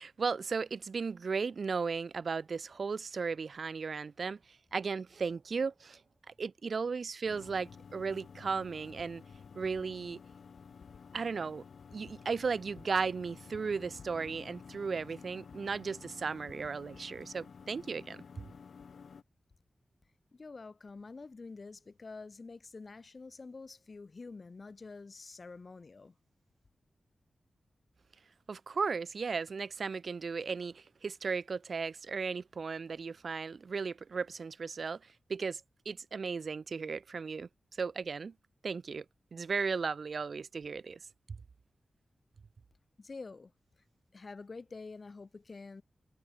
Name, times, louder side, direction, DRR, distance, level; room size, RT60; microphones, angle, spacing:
voice 1, 0.0-4.4 4.7-6.0 6.4-9.2 9.6-10.2 11.1-11.6 11.9-18.2 28.5-35.0 35.3-35.6 35.9-37.5 37.8-38.3 38.6-39.0 39.3-41.0, right 5 dB, 50° right, 0.5 m, -35 dB
sound 1, 7.2-19.2, left 6 dB, 70° left, 0.8 m, -52 dB
voice 2, 20.3-26.2 43.0-43.5 44.1-45.8, left 4 dB, 35° left, 0.5 m, -47 dB
wide cardioid pair, 165°, 0 cm